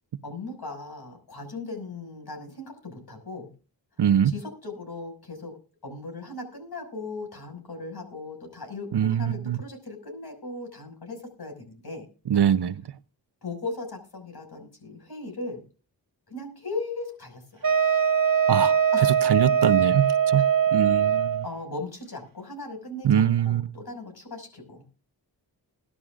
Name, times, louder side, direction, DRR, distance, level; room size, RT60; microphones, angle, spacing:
voice 1, 0.2-3.5 4.2-5.6 5.8-12.1 13.4-15.6 16.3-17.7 18.9-19.1 20.4-20.5 21.4-24.9, left 3 dB, 60° left, 5.8 m, -38 dB
voice 2, 4.0-4.3 8.9-9.6 12.3-12.8 18.5-18.8 19.2-20.4 20.7-21.4 23.0-23.7, right 9 dB, 65° right, 0.7 m, -23 dB
Wind instrument woodwind instrument, 17.6-21.5, right 7 dB, 50° right, 1.2 m, -21 dB
21.5 x 11.5 x 2.5 m
wide cardioid pair, 70°, 43 cm